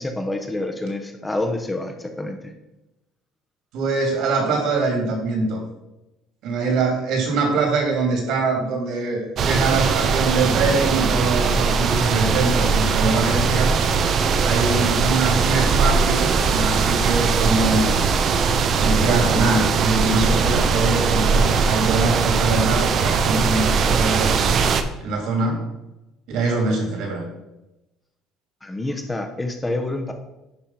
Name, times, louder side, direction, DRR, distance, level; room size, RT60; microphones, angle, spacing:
voice 1, 0.0-2.5 28.6-30.1, left 2 dB, 10° left, 4 dB, 0.8 m, -27 dB
voice 2, 3.7-5.6 6.4-13.7 14.4-18.0 18.7-24.5 25.0-25.7 26.3-27.2, right 3 dB, 70° right, 1 dB, 3.1 m, -23 dB
sound 1, 9.4-24.8, right 5 dB, 45° right, 0.7 m, -20 dB
10.5 x 3.5 x 5.7 m, 0.96 s
cardioid pair, 140°, 0 cm